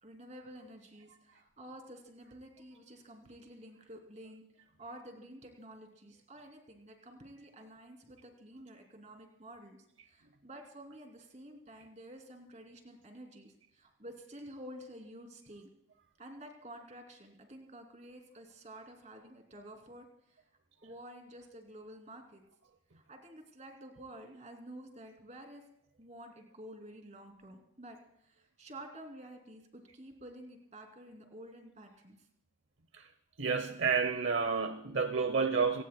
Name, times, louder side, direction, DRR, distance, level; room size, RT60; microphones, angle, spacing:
voice 1, 0.0-15.7 16.2-20.4 20.8-22.4 22.9-25.6 26.0-32.2, right 1 dB, 35° right, 4 dB, 2.8 m, -51 dB
voice 2, 33.4-35.8, right 5 dB, 75° right, 9 dB, 0.9 m, -30 dB
28.0 x 18.0 x 2.2 m, 0.74 s
head